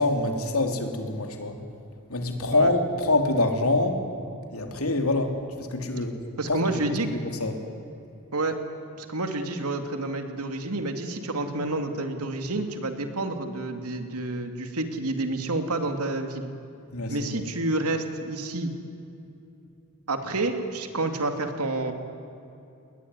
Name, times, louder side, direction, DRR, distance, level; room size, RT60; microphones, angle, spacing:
voice 1, 0.0-1.6 2.1-4.0 4.5-6.2 6.5-6.7 7.4-7.6 16.9-17.4, left 2 dB, 70° left, 4 dB, 3.4 m, -25 dB
voice 2, 6.4-7.1 8.3-8.6 9.0-16.5 17.1-18.7 20.1-21.9, right 2 dB, 90° right, 6 dB, 2.8 m, -29 dB
28.5 x 21.0 x 9.9 m, 2.7 s
head